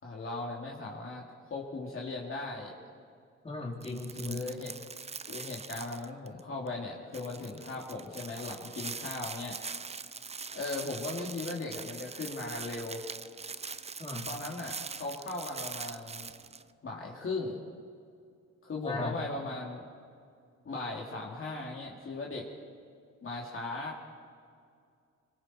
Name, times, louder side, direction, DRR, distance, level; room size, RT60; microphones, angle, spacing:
voice 1, 0.0-2.7 4.3-4.7 5.3-9.6 10.5-13.0 14.3-16.3 16.8-17.6 18.6-19.8 20.6-22.5 23.2-24.0, left 3 dB, 45° left, -2 dB, 3.0 m, -38 dB
voice 2, 3.4-4.4 14.0-14.2 18.8-19.1, left 2 dB, 20° left, -2 dB, 3.7 m, -36 dB
sound 1, 3.8-6.4 6.7-6.8 7.1-16.6, right 5 dB, 20° right, 0.6 m, -42 dB
25.5 x 22.5 x 4.6 m, 2.2 s
cardioid pair, 90°, 30 cm